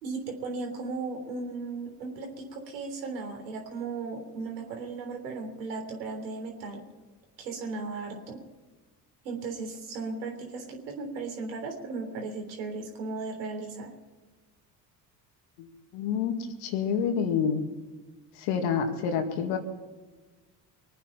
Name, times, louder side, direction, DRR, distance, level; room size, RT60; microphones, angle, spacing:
voice 1, 0.0-6.8 7.4-8.4 9.2-13.9, right 3 dB, 85° right, 2 dB, 3.6 m, -36 dB
voice 2, 15.9-16.4 16.6-17.7 18.4-19.6, left 7 dB, 70° left, 5 dB, 2.3 m, -27 dB
23.5 x 9.6 x 5.8 m, 1.3 s
hypercardioid pair, 60°, 49 cm